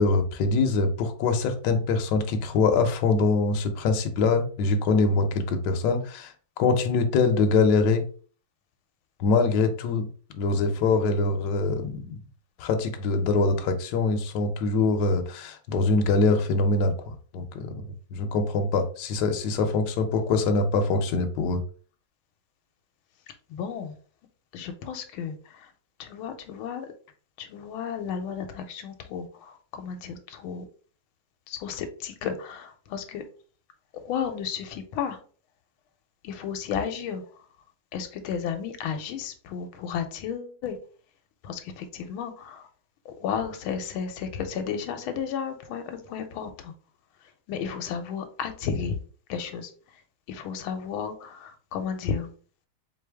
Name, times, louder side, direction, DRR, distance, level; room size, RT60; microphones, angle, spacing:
voice 1, 0.0-8.0 9.2-10.1 10.3-12.1 12.6-17.8 18.1-21.6, left 3 dB, 70° left, 6 dB, 1.1 m, -24 dB
voice 2, 23.5-23.9 24.5-25.4 26.0-26.9 27.4-30.6 31.5-33.2 34.0-35.2 36.2-37.2 37.9-40.8 41.4-42.6 43.2-46.7 47.5-49.0 49.3-49.7 50.3-52.3, left 7 dB, 85° left, 7 dB, 1.4 m, -33 dB
3.8 x 3.3 x 3.4 m, 0.42 s
omnidirectional pair, 2.2 m